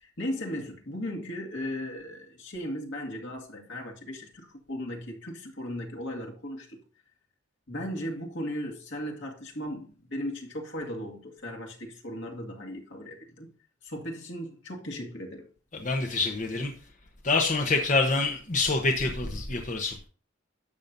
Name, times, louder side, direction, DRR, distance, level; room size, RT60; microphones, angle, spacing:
voice 1, 0.0-6.8 7.7-13.5 13.8-15.5, equal, 70° left, 2.1 m, -37 dB
voice 2, 15.7-16.7 17.2-20.0, left 3 dB, 40° left, 1.0 m, -26 dB
12.0 x 7.4 x 2.7 m
head